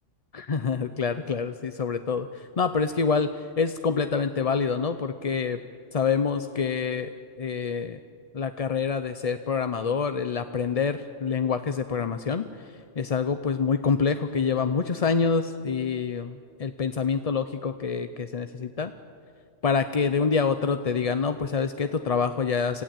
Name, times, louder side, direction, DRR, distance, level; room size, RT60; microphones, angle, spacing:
voice 1, 0.3-5.6 5.9-7.1 7.4-8.0 8.3-18.9 19.6-22.8, left 5 dB, 40° left, 10 dB, 0.6 m, -26 dB
26.0 x 16.0 x 9.0 m, 2.2 s
omnidirectional pair, 1.3 m